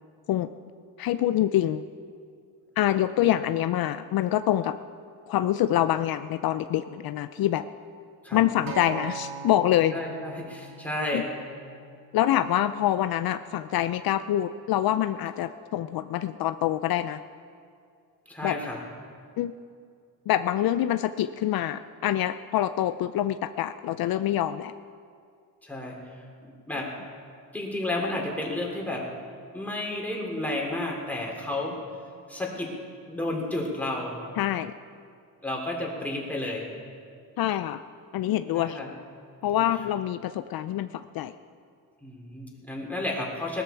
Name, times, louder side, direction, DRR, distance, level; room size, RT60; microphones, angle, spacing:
voice 1, 1.0-1.8 2.8-4.7 5.3-7.6 8.3-10.0 11.1-11.2 12.1-17.2 18.4-18.6 19.4-19.5 20.3-24.7 34.4-34.7 37.4-37.8 38.1-38.8 39.4-41.3, left 12 dB, 65° left, 11 dB, 0.5 m, -25 dB
Acoustic guitar, 8.7-12.9 13.8-13.9, right 6 dB, 60° right, 1.8 m, -41 dB
voice 2, 9.9-11.2 18.3-18.8 25.6-26.9 27.5-29.0 29.5-31.8 32.3-32.7 33.1-34.2 35.4-36.7 38.5-38.9 42.0-43.6, left 1 dB, 5° left, -2 dB, 3.6 m, -32 dB
19.0 x 13.0 x 4.6 m, 2.3 s
cardioid pair, 105°, 38 cm